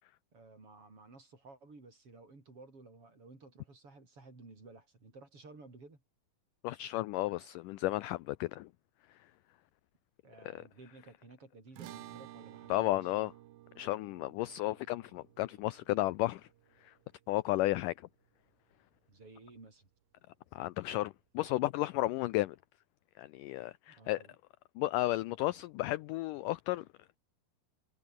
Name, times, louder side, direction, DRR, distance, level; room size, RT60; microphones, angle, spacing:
voice 1, 0.3-6.0 10.2-13.1 19.1-19.9 23.9-24.4, right 3 dB, 35° right, 6.8 m, -55 dB
voice 2, 6.6-8.7 10.5-10.6 12.7-13.3 13.8-16.5 16.8-16.9 17.3-18.1 20.5-22.6 23.2-24.2 24.8-26.9, left 17 dB, 80° left, 1.9 m, -33 dB
sound 1, 11.8-18.3, right 14 dB, 75° right, 2.9 m, -54 dB
omnidirectional pair, 4.4 m